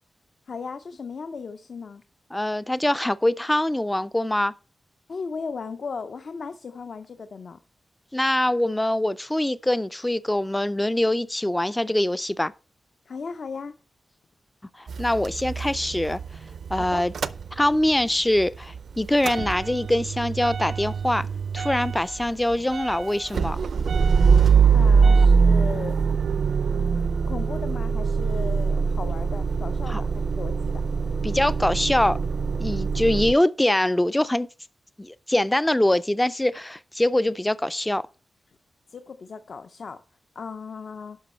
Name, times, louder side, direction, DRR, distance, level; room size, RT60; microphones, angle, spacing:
voice 1, 0.5-2.0 5.1-7.6 13.1-13.7 16.9-17.0 24.7-26.0 27.3-30.8 38.9-40.0 40.4-41.2, left 5 dB, 55° left, 0.6 m, -36 dB
voice 2, 2.3-4.5 8.1-12.5 14.8-16.2 16.7-17.1 17.5-21.3 21.5-23.6 29.9-30.0 31.2-32.2 32.6-34.5 35.0-38.0, left 1 dB, 10° left, 0.3 m, -23 dB
Motor vehicle (road) / Engine starting / Idling, 14.9-18.0 18.4-33.3, right 5 dB, 70° right, 0.5 m, -23 dB
11.0 x 5.9 x 4.3 m
wide cardioid pair, 155°, 0 cm